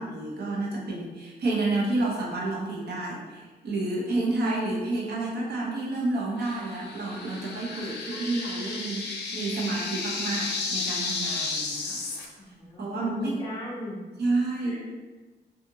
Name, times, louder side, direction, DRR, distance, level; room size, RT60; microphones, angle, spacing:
voice 1, 0.0-12.0 12.8-13.4 14.2-14.8, right 2 dB, 70° right, -3 dB, 0.7 m, -30 dB
sound 1, 6.4-12.3, left 3 dB, 85° left, 0.4 m, -33 dB
voice 2, 12.4-14.0 14.6-14.9, left 1 dB, 25° left, -4 dB, 0.4 m, -37 dB
2.7 x 2.4 x 2.6 m, 1.3 s
wide cardioid pair, 110°, 17 cm